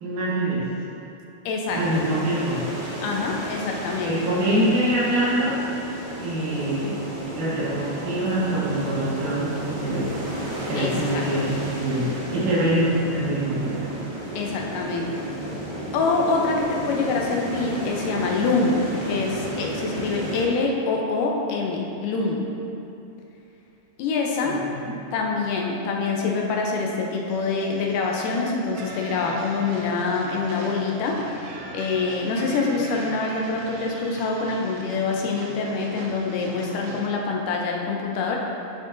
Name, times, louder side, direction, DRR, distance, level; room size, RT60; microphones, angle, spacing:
voice 1, 0.0-0.7 1.7-2.7 4.0-5.6 6.2-7.0 7.3-10.1 10.7-11.5 11.8-13.9 24.4-24.8, right 1 dB, 70° right, -8 dB, 3.2 m, -24 dB
voice 2, 1.5-1.8 3.0-4.1 10.8-11.2 12.5-12.6 14.4-15.3 15.9-22.5 24.0-24.6 25.1-31.3 31.7-38.4, left 4 dB, 80° left, -1 dB, 2.3 m, -25 dB
sound 1, 1.7-20.4, right 1 dB, 30° right, 0.8 m, -33 dB
sound 2, 25.2-31.2, right 3 dB, 40° left, 2.2 m, -44 dB
sound 3, 27.3-37.1, right 2 dB, 85° right, 1.4 m, -40 dB
9.9 x 6.6 x 2.6 m, 2.7 s
omnidirectional pair, 3.8 m